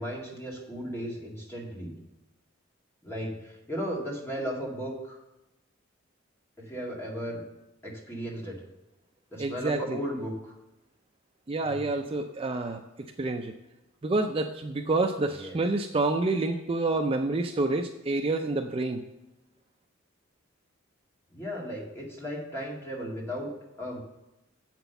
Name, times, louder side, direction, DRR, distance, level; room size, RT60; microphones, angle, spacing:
voice 1, 0.0-1.9 3.0-5.2 6.6-7.4 7.8-8.6 9.3-10.5 11.6-11.9 15.3-15.6 21.3-23.5 23.8-24.0, equal, 10° left, -3 dB, 2.2 m, -35 dB
voice 2, 9.4-10.0 11.5-12.8 13.2-13.5 14.0-19.0, right 2 dB, 25° right, 5 dB, 0.4 m, -28 dB
7.8 x 6.0 x 6.9 m, 0.95 s
head